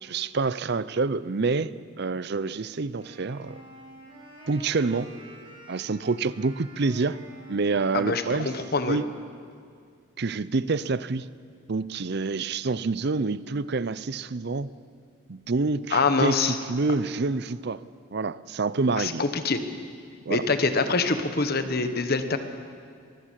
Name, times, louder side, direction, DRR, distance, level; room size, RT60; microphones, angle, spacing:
voice 1, 0.0-1.7 2.0-3.6 4.5-5.1 5.7-7.2 7.5-8.5 8.9-9.1 10.2-11.3 11.7-14.7 15.3-17.8 18.1-19.2 20.3-20.5, right 3 dB, 55° right, 17 dB, 0.6 m, -27 dB
Wind instrument woodwind instrument, 2.9-9.1, right 2 dB, 25° right, 5.1 m, -48 dB
voice 2, 7.9-9.0 15.9-16.6 19.0-19.6 20.3-22.4, left 4 dB, 50° left, 8 dB, 1.3 m, -25 dB
23.0 x 15.0 x 7.6 m, 2.2 s
head